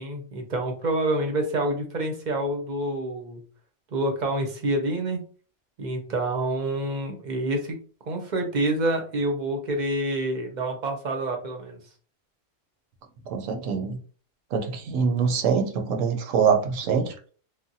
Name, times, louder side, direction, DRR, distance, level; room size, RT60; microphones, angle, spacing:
voice 1, 0.0-3.4 3.9-5.2 5.8-7.8 8.1-11.8, right 1 dB, 50° right, 3 dB, 0.6 m, -27 dB
voice 2, 13.3-14.0 14.5-17.1, right 6 dB, 90° right, 5 dB, 1.0 m, -24 dB
3.3 x 2.1 x 2.6 m, 0.41 s
omnidirectional pair, 1.3 m